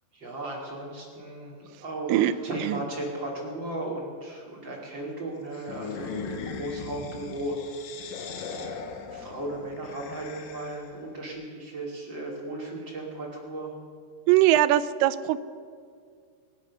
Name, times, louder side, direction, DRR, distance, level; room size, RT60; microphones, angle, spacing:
voice 1, 0.1-6.3 6.6-8.0 9.1-13.7, right 2 dB, 30° right, -3 dB, 2.9 m, -35 dB
sound 1, 5.5-11.0, left 5 dB, 80° left, 3.7 m, -39 dB
voice 2, 14.3-15.4, right 14 dB, 85° right, 11 dB, 2.8 m, -21 dB
25.5 x 8.5 x 6.3 m, 2.1 s
omnidirectional pair, 5.2 m